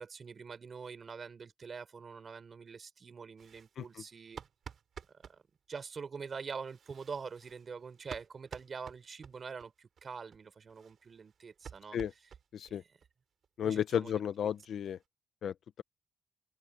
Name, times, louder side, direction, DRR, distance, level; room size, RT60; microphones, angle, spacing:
voice 1, 0.0-4.4 5.1-5.4 5.7-12.0 12.7-12.9 13.6-14.2, right 5 dB, 40° right, 4.2 m, -45 dB
sound 1, 3.4-5.4 6.6-9.7 10.0-10.1 10.3-10.4 10.7-12.8 13.0-13.1 13.4-13.5 13.9-14.0 14.2-15.0, right 7 dB, 55° right, 3.5 m, -52 dB
voice 2, 13.6-15.0 15.4-15.8, left 9 dB, 70° left, 0.7 m, -33 dB
open air
cardioid pair, 135°, 0 cm